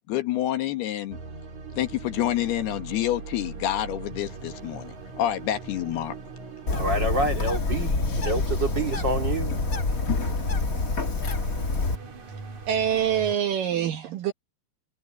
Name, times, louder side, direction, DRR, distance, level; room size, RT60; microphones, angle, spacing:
voice 1, 0.1-1.2 1.8-6.2, left 12 dB, 75° left, 3.4 m, -28 dB
sound 1, 1.1-13.4, right 4 dB, 45° right, 4.7 m, -40 dB
Bird, 6.7-12.0, left 3 dB, 45° left, 1.1 m, -26 dB
voice 2, 6.7-8.0 8.2-9.5, right 2 dB, 30° right, 2.9 m, -27 dB
voice 3, 12.7-14.3, right 9 dB, 65° right, 2.5 m, -25 dB
omnidirectional pair, 4.8 m